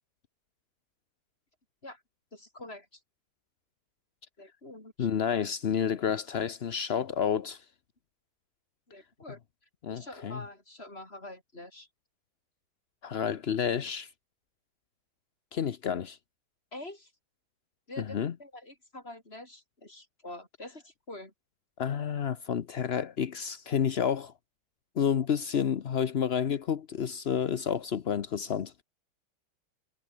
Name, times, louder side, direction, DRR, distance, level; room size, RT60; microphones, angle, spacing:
voice 1, 2.3-3.0 4.4-5.1 8.9-9.4 9.9-11.9 16.7-17.1 17.9-21.3, left 2 dB, 25° left, 6.1 m, -46 dB
voice 2, 5.0-7.6 9.8-10.4 13.0-14.1 15.5-16.2 18.0-18.3 21.8-24.3 25.0-28.7, left 8 dB, 70° left, 0.5 m, -30 dB
omnidirectional pair, 2.3 m